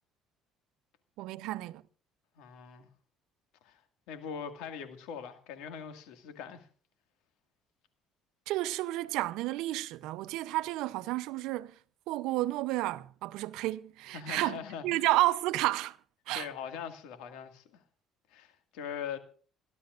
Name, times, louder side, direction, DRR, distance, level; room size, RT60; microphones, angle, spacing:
voice 1, 1.2-1.8 8.5-11.7 12.1-16.0 16.3-16.5, right 17 dB, 85° right, 0.7 m, -31 dB
voice 2, 2.4-2.9 3.6-3.8 4.1-6.7 14.1-15.0 16.3-17.8 18.3-19.2, left 7 dB, 85° left, 2.0 m, -41 dB
27.0 x 11.5 x 2.5 m
cardioid pair, 95°, 0 cm